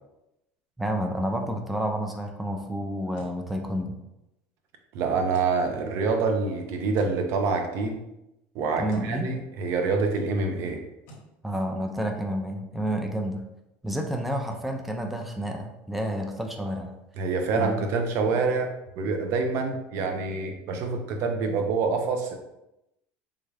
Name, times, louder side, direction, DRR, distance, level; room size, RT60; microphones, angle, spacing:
voice 1, 0.8-4.0 8.8-9.3 11.4-13.4 13.8-16.9 17.6-17.7, equal, 5° right, 3 dB, 0.3 m, -30 dB
sound 1, 3.1-3.4 5.3-5.6 6.9-7.2 8.9-9.1 11.1-11.3, equal, 60° left, 0.8 m, -48 dB
voice 2, 4.9-8.0 8.5-10.8 17.2-18.7 19.0-22.3, right 4 dB, 55° right, 4 dB, 0.6 m, -26 dB
3.5 x 2.2 x 3.3 m, 0.89 s
cardioid pair, 140°, 6 cm